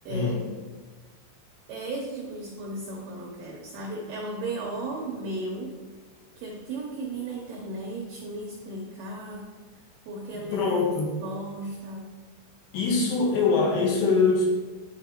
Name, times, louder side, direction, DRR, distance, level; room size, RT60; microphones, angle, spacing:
voice 1, 0.1-0.7 1.7-5.7 6.4-9.5 10.1-10.7 11.2-12.1, right 2 dB, 80° right, -2 dB, 2.2 m, -35 dB
voice 2, 10.5-11.1 12.7-14.4, left 4 dB, 80° left, -3 dB, 1.8 m, -23 dB
12.0 x 4.2 x 2.9 m, 1.3 s
omnidirectional pair, 5.6 m